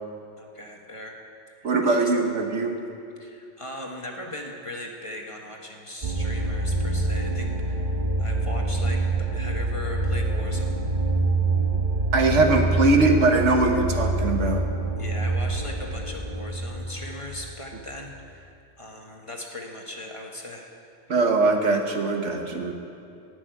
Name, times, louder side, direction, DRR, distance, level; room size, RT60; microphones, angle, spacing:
voice 1, 0.4-1.2 1.6-2.1 3.2-10.8 15.0-18.5 18.8-20.7, left 1 dB, 25° left, 0 dB, 1.4 m, -39 dB
voice 2, 1.6-2.8 12.1-14.6 21.1-22.7, right 2 dB, 80° right, 3 dB, 1.5 m, -21 dB
sound 1, 6.0-18.0, right 2 dB, 40° right, 1.0 m, -26 dB
15.0 x 6.3 x 9.5 m, 2.6 s
omnidirectional pair, 1.2 m